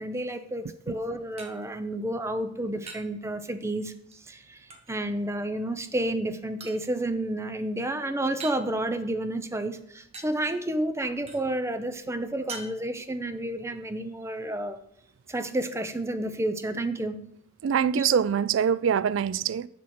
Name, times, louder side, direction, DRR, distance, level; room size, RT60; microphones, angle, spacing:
voice 1, 0.0-14.8 15.3-17.2 17.9-18.1, right 1 dB, 15° right, 0.5 m, -30 dB
sound 1, 0.7-15.1, right 4 dB, 35° right, 1.0 m, -50 dB
voice 2, 17.6-19.7, right 8 dB, 80° right, 0.3 m, -24 dB
7.2 x 6.2 x 4.3 m
head